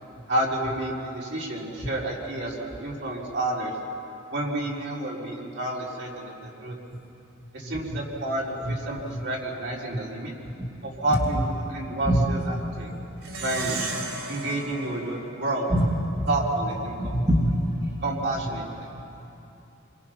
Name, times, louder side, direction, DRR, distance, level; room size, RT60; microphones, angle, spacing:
voice 1, 0.3-3.8 4.3-6.8 7.5-10.3 10.8-13.0 13.4-13.9 14.3-15.7 16.3-17.1 18.0-18.9, right 1 dB, 60° right, -4 dB, 4.1 m, -30 dB
voice 2, 7.4-8.0 8.6-8.7 9.1-9.2 10.6-10.7 11.1-11.4 12.1-12.2 15.7-15.9 16.2-16.3 17.0-18.0, equal, 15° right, -4 dB, 2.3 m, -25 dB
Plucked string instrument, 13.2-16.0, right 3 dB, 85° right, 4.8 m, -34 dB
28.0 x 23.5 x 6.0 m, 2.8 s
head